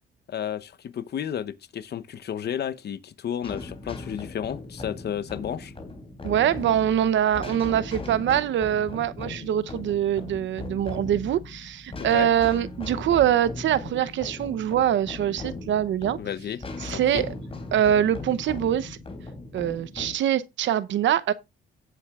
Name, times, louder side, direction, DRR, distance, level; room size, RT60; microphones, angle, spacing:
voice 1, 0.3-5.7 12.0-12.3 16.2-16.6 16.9-17.2, left 9 dB, 55° left, 0.9 m, -32 dB
sound 1, 3.4-20.1, left 3 dB, 30° left, 3.2 m, -38 dB
voice 2, 6.2-16.2 16.8-17.3 17.7-19.0 19.5-21.3, right 10 dB, 70° right, 0.8 m, -24 dB
17.0 x 7.5 x 2.4 m
cardioid pair, 90°, 20 cm